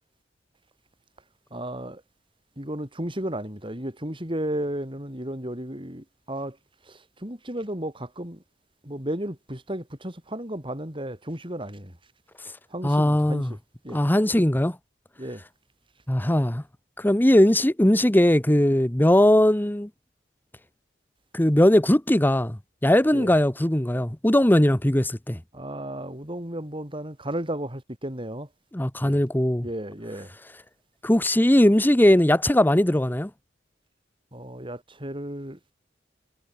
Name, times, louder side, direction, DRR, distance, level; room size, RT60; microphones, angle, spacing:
voice 1, 1.5-2.0 2.6-6.6 6.9-8.4 8.8-11.9 12.7-13.5 13.8-14.0 15.2-15.4 23.1-23.3 25.5-28.5 29.0-29.2 29.6-30.3 34.3-35.6, right 1 dB, 30° right, 6.1 m, -33 dB
voice 2, 12.8-13.5 13.9-14.8 16.1-16.6 17.0-19.9 21.3-25.4 28.7-29.7 31.0-33.3, left 1 dB, 10° left, 0.9 m, -20 dB
head